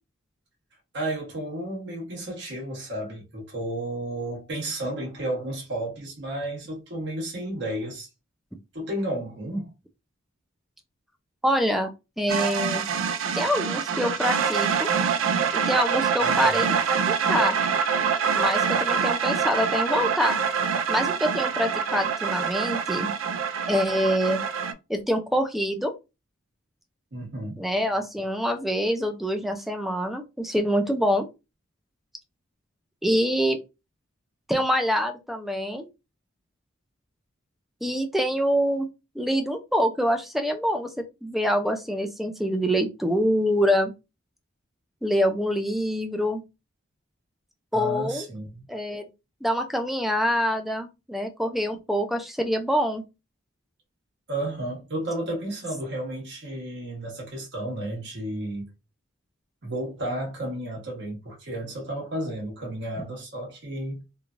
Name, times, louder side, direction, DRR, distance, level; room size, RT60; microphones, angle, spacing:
voice 1, 0.9-8.1 8.7-9.7 16.2-16.6 27.1-27.7 47.7-48.6 54.3-58.7 59.6-64.0, right 1 dB, 60° right, 1.3 m, -32 dB
voice 2, 11.4-11.9 12.2-12.8 13.3-14.9 15.5-17.0 17.3-17.6 18.3-20.4 20.9-23.1 23.7-24.4 24.9-25.9 27.6-31.3 33.0-33.6 34.5-35.9 37.8-38.9 39.2-40.9 41.2-43.9 45.0-46.4 47.7-48.3 48.7-49.1 49.4-53.0, equal, ahead, 0.4 m, -25 dB
sound 1, 12.3-24.7, right 6 dB, 80° right, 0.4 m, -25 dB
3.1 x 2.3 x 2.5 m
head